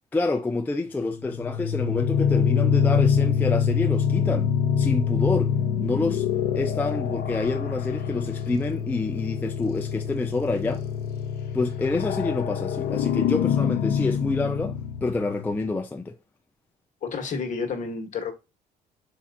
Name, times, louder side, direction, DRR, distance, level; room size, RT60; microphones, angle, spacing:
voice 1, 0.1-4.5 4.8-5.5 5.8-6.3 6.5-10.8 11.5-14.8 15.0-16.1, left 3 dB, 10° left, 0.3 m, -27 dB
sound 1, 1.1-15.7, left 7 dB, 65° left, 0.7 m, -25 dB
voice 2, 17.0-18.3, left 5 dB, 50° left, 1.1 m, -30 dB
4.3 x 2.8 x 2.6 m
cardioid pair, 110°, 17 cm